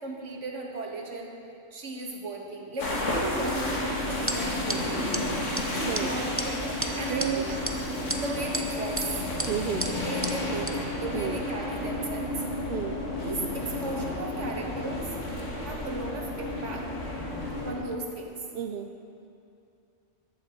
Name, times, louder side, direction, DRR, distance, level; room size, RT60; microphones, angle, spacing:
voice 1, 0.0-1.4 1.7-4.9 5.7-7.6 8.2-9.2 9.8-12.3 13.2-15.2 15.6-16.9 17.7-18.4, right 2 dB, 75° right, 0 dB, 1.8 m, -36 dB
sound 1, 2.8-17.7, left 1 dB, 80° left, 2.1 m, -32 dB
sound 2, 4.3-4.4 4.7-4.8 5.1-5.2 5.6-5.7 5.9-6.0 6.4-6.5 6.8-7.3 7.6-7.7 8.1-8.6 9.0-9.1 9.4-9.5 9.8-9.9 10.2-10.3 10.7-10.8, right 2 dB, 15° right, 0.5 m, -31 dB
voice 2, 5.5-6.1 7.1-7.5 9.5-9.8 11.1-11.4 12.7-13.0 18.5-18.9, right 9 dB, 60° right, 7 dB, 0.7 m, -31 dB
14.5 x 11.0 x 4.4 m, 2.6 s
omnidirectional pair, 1.2 m